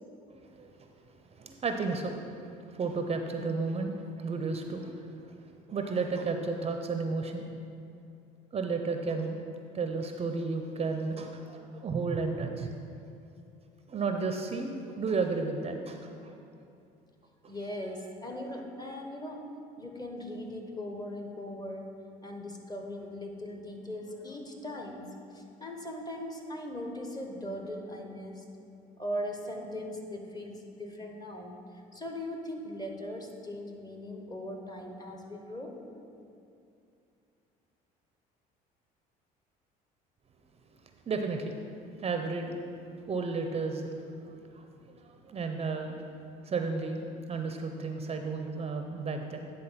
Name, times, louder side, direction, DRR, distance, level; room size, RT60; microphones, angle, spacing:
voice 1, 0.3-0.9 1.3-2.2 2.7-5.4 5.7-7.5 8.5-9.4 9.7-12.7 13.0-13.1 13.9-16.4 17.4-17.5 41.1-41.6 42.0-42.6 43.1-46.0 46.4-49.5, right 4 dB, 35° right, 5 dB, 0.6 m, -33 dB
voice 2, 17.5-19.5 19.8-28.5 29.0-31.6 31.9-35.8, left 1 dB, 20° left, 3 dB, 1.1 m, -39 dB
9.6 x 3.7 x 5.7 m, 2.6 s
supercardioid pair, 75°, 19 cm